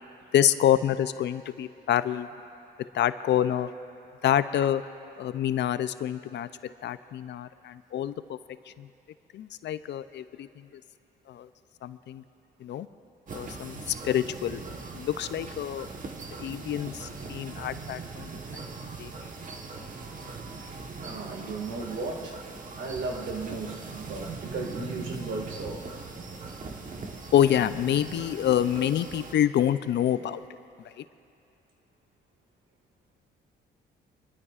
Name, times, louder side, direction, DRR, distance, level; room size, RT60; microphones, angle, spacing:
voice 1, 0.3-2.3 2.9-3.7 4.2-4.8 5.2-6.5 6.8-8.4 8.7-8.9 9.3-10.7 11.3-11.5 11.8-12.2 12.6-12.9 13.3-14.6 14.9-15.9 16.4-18.6 19.0-19.1 27.3-30.4 31.0-31.1, left 10 dB, 65° left, 13 dB, 0.5 m, -27 dB
sound 1, 13.3-29.3, right 4 dB, 40° right, 1.2 m, -40 dB
voice 2, 21.0-22.3 22.8-25.8, right 3 dB, 70° right, 1 dB, 2.1 m, -35 dB
25.5 x 12.0 x 2.5 m, 2.6 s
cardioid pair, 90°, 20 cm